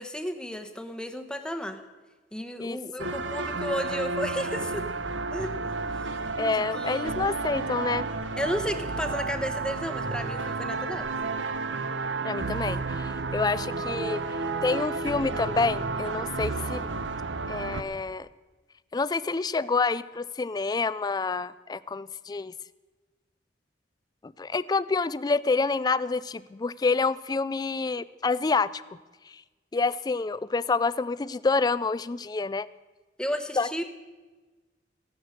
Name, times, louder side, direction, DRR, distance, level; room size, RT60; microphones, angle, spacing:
voice 1, 0.0-1.8 2.3-4.9 5.3-7.1 8.4-11.1 33.2-33.8, equal, 5° left, 7 dB, 1.0 m, -33 dB
voice 2, 2.6-3.1 6.4-8.1 12.2-14.2 14.6-16.8 17.5-18.3 18.9-22.5 24.2-28.8 29.3-29.4 29.7-32.7 33.6-33.8, left 4 dB, 20° left, 18 dB, 0.3 m, -28 dB
sound 1, 3.0-17.8, right 3 dB, 85° right, 0.8 m, -31 dB
15.5 x 10.5 x 6.4 m, 1.3 s
head